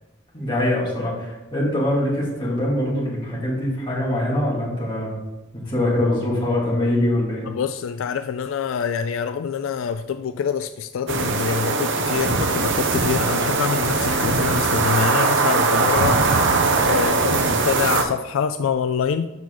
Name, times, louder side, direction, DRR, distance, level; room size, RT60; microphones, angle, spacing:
voice 1, 0.3-5.2 5.5-7.5 14.1-14.2, left 1 dB, 25° left, -6 dB, 2.6 m, -23 dB
voice 2, 7.5-16.2 16.9-19.3, left 7 dB, 70° left, 10 dB, 0.3 m, -25 dB
sound 1, 11.1-18.0, right 3 dB, 60° right, 0.8 m, -20 dB
7.3 x 5.9 x 3.9 m, 1.0 s
head